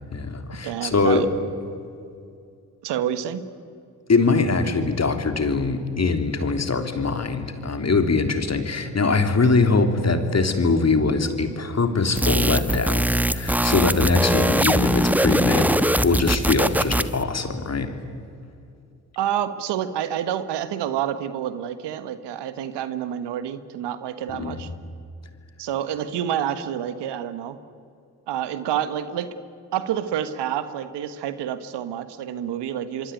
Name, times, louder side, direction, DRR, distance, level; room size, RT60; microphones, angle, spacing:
voice 1, 0.1-1.3 4.1-15.7 16.0-18.0 24.3-24.7, left 3 dB, 40° left, 7 dB, 3.5 m, -22 dB
voice 2, 0.6-1.3 2.8-3.4 19.2-24.7 25.6-27.6 28.3-29.3 29.7-33.1, right 10 dB, 75° right, 12 dB, 1.5 m, -28 dB
sound 1, 12.2-17.2, right 1 dB, 5° right, 1.3 m, -21 dB
26.5 x 23.5 x 9.3 m, 2.4 s
hypercardioid pair, 45°, 41 cm